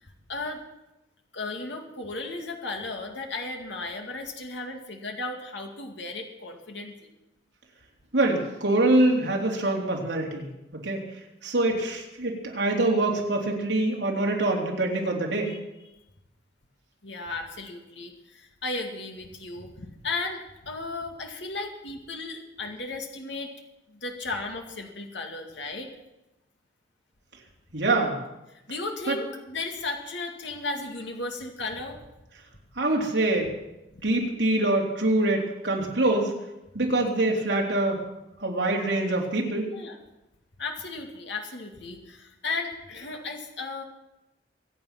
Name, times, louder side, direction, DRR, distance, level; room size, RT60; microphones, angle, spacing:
voice 1, 0.0-0.6 1.3-7.1 15.5-15.6 17.0-23.5 23.9-25.9 28.5-32.0 36.8-36.9 39.7-40.0 40.6-43.8, left 3 dB, 75° left, 3 dB, 2.2 m, -35 dB
voice 2, 8.1-11.0 11.4-15.5 27.7-28.2 29.1-29.2 32.7-33.5 34.0-36.3 36.7-38.0 38.4-39.7, right 2 dB, 70° right, -1 dB, 3.4 m, -24 dB
23.5 x 9.1 x 5.9 m, 0.94 s
head